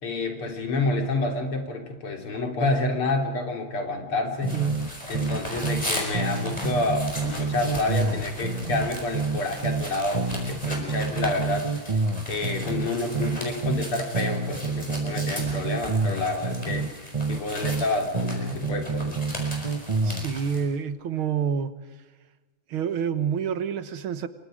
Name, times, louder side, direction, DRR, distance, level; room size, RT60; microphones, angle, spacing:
voice 1, 0.0-4.6 5.1-11.7 12.3-16.9 17.3-19.2, left 2 dB, 85° left, 3 dB, 4.2 m, -28 dB
sound 1, 4.4-20.6, equal, 15° left, 6.2 m, -38 dB
sound 2, 4.4-5.9 6.1-9.9 10.1-13.9 14.1-17.9 18.1-20.3, right 3 dB, 20° right, 1.0 m, -28 dB
voice 2, 20.0-21.7 22.7-24.3, right 7 dB, 75° right, 12 dB, 2.1 m, -27 dB
28.0 x 24.5 x 5.1 m, 1.2 s
omnidirectional pair, 2.3 m